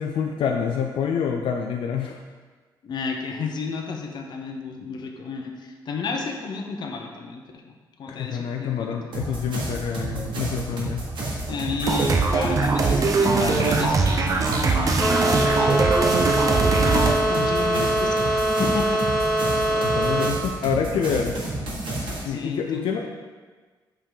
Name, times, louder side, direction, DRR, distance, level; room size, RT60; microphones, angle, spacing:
voice 1, 0.0-2.2 8.1-11.0 19.7-21.4 22.2-23.1, left 7 dB, 85° left, 2 dB, 0.4 m, -27 dB
voice 2, 2.8-9.0 11.4-19.1 22.3-23.0, left 4 dB, 60° left, 3 dB, 0.7 m, -32 dB
sound 1, 9.1-22.2, right 2 dB, 70° right, 1.5 m, -31 dB
sound 2, 11.8-17.1, right 4 dB, 40° right, 0.5 m, -21 dB
sound 3, 15.0-20.3, right 1 dB, 10° left, 0.5 m, -23 dB
5.5 x 3.7 x 4.9 m, 1.4 s
cardioid pair, 135°, 9 cm